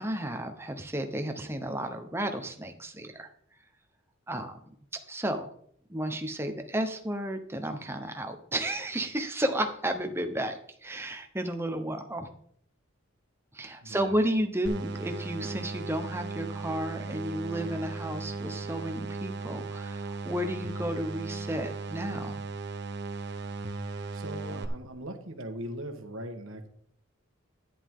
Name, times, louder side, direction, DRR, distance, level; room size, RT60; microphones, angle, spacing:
voice 1, 0.0-3.3 4.3-5.5 5.9-12.3 13.5-22.4, right 1 dB, 10° right, 6 dB, 1.0 m, -32 dB
voice 2, 13.8-14.3 24.1-26.7, right 1 dB, 70° right, 5 dB, 1.5 m, -40 dB
sound 1, 14.7-24.7, right 3 dB, 55° right, 0.9 m, -37 dB
11.0 x 10.5 x 3.8 m, 0.63 s
head